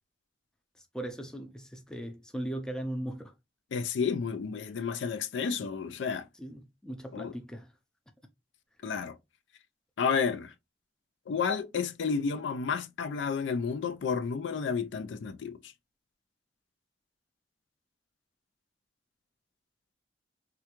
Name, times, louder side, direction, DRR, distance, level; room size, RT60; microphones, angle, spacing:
voice 1, 0.8-3.3 6.4-7.7, right 1 dB, 5° left, 0.4 m, -38 dB
voice 2, 3.7-6.2 7.1-7.3 8.8-9.2 10.0-10.5 11.3-15.7, left 6 dB, 85° left, 0.4 m, -31 dB
3.4 x 2.3 x 2.9 m
head